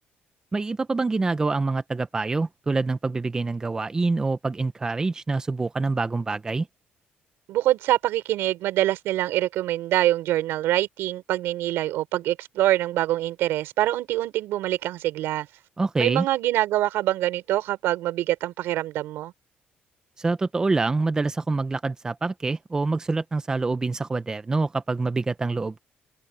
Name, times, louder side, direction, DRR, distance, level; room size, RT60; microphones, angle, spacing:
voice 1, 0.5-6.7 15.8-16.3 20.2-25.8, right 3 dB, 20° right, 0.7 m, -26 dB
voice 2, 7.5-15.5 16.0-19.3, right 14 dB, 85° right, 4.8 m, -25 dB
cardioid pair, 125°, 4 cm